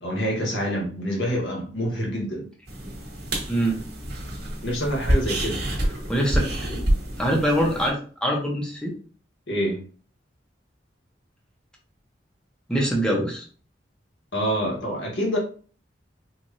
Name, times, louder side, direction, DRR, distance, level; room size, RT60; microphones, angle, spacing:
voice 1, 0.0-2.5 4.6-5.6 9.5-9.8 14.3-15.4, equal, 75° left, 1.5 m, -26 dB
sound 1, 2.7-7.9, right 1 dB, 60° right, 1.5 m, -27 dB
voice 2, 6.1-6.8 7.2-8.9 12.7-13.4, equal, 5° left, 0.9 m, -24 dB
4.7 x 2.6 x 2.7 m
head